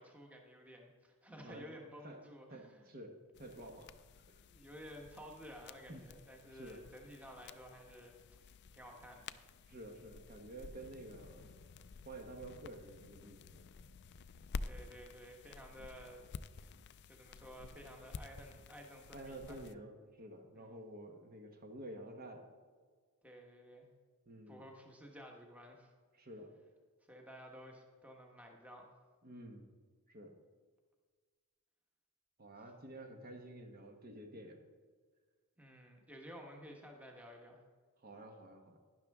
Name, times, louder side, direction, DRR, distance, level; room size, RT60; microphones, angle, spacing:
voice 1, 0.0-2.9 4.5-9.3 14.6-16.3 16.5-16.7 17.1-19.6 20.5-20.8 23.2-23.9 24.5-25.9 27.1-29.0 35.6-37.6, equal, 5° right, 1 dB, 1.2 m, -53 dB
voice 2, 1.4-2.2 2.5-4.0 4.3-4.4 5.9-6.0 6.5-6.8 9.6-11.6 12.0-13.6 19.1-22.5 24.3-24.6 26.1-26.5 29.2-29.7 30.1-30.4 32.4-34.7 38.0-38.8, right 1 dB, 40° right, 3 dB, 1.1 m, -51 dB
sound 1, 3.3-19.7, left 4 dB, 50° left, 0.4 m, -51 dB
11.5 x 10.5 x 3.6 m, 1.6 s
head